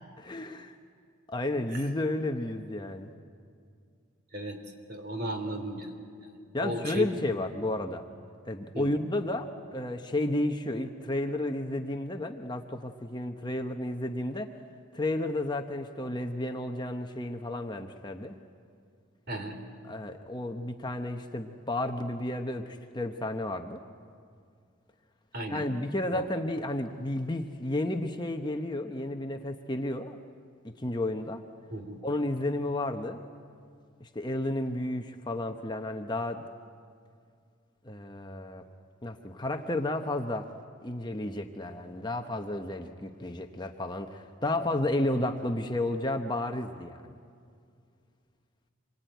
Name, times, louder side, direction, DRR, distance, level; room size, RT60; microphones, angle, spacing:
voice 1, 0.2-0.7 1.3-3.1 6.5-8.0 8.5-14.5 14.9-18.3 19.8-23.8 25.5-30.2 30.8-31.4 32.0-33.2 34.0-36.4 37.8-38.6 39.0-40.5 40.8-47.2, left 1 dB, 20° left, 5 dB, 0.9 m, -32 dB
voice 2, 4.9-5.9 6.6-7.1 8.7-8.9 19.3-19.6 25.3-25.7 26.1-26.2 31.7-32.0, right 1 dB, 45° right, 5 dB, 3.3 m, -35 dB
27.0 x 23.0 x 9.2 m, 2.2 s
head